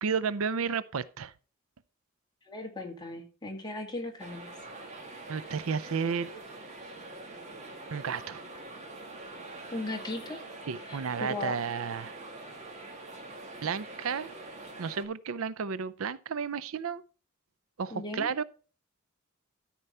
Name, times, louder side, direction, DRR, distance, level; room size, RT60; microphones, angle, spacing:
voice 1, 0.0-1.3 5.3-6.3 7.9-8.4 10.7-12.2 13.6-14.3 14.8-17.0 17.8-18.4, right 6 dB, 85° right, 0.5 m, -32 dB
voice 2, 2.5-4.5 9.7-10.4 10.8-11.6 17.9-18.3, left 2 dB, 20° left, 2.0 m, -37 dB
sound 1, 4.2-15.0, right 2 dB, 35° right, 2.0 m, -44 dB
13.5 x 4.6 x 5.5 m
head